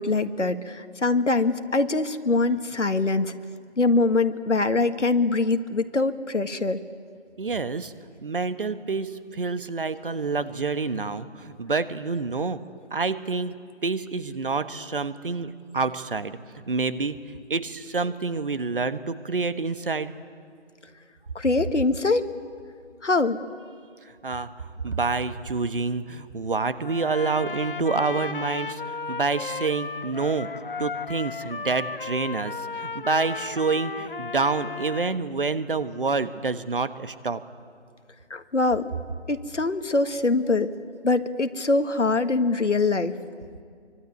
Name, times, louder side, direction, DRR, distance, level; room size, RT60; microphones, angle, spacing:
voice 1, 0.0-3.4 3.8-6.8 21.4-22.3 23.0-23.4 38.3-38.9 39.3-40.7 41.0-43.2, left 3 dB, 85° left, 9 dB, 1.8 m, -23 dB
voice 2, 7.4-7.9 8.2-12.6 12.9-13.6 13.8-16.4 16.7-17.2 17.5-20.1 24.2-30.5 30.8-37.4, right 4 dB, 50° right, 12 dB, 1.3 m, -27 dB
Trumpet, 26.8-35.2, left 4 dB, 50° left, 0.6 m, -35 dB
26.0 x 24.0 x 9.5 m, 2.2 s
figure-of-eight pair, 165°, 35 cm